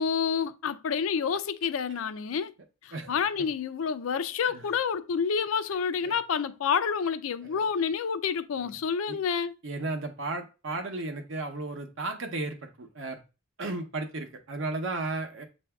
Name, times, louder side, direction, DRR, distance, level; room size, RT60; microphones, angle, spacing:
voice 1, 0.0-2.5 2.8-9.5, left 6 dB, 80° left, 0.4 m, -28 dB
voice 2, 2.9-3.5 4.5-4.7 6.0-6.2 7.4-7.7 8.6-8.8 9.1-9.2 9.6-13.2 13.6-15.5, right 2 dB, 65° right, 0.8 m, -35 dB
7.7 x 2.6 x 2.3 m
head